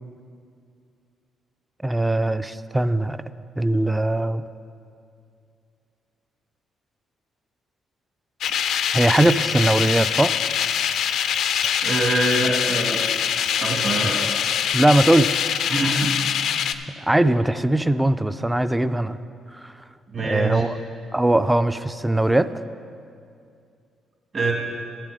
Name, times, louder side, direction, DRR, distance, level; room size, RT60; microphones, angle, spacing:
voice 1, 1.8-3.2 3.6-4.4 8.9-10.3 14.7-15.4 17.1-19.2 19.5-19.7 20.2-20.8 21.1-22.5, right 1 dB, 10° right, 13 dB, 0.3 m, -20 dB
sound 1, 8.4-16.7, left 8 dB, 75° left, 0.4 m, -23 dB
voice 2, 11.8-13.0 13.6-14.3 15.7-16.1 20.1-20.6 24.3-24.5, right 2 dB, 45° right, -1 dB, 2.2 m, -24 dB
12.0 x 7.5 x 5.0 m, 2.4 s
cardioid pair, 90°, 0 cm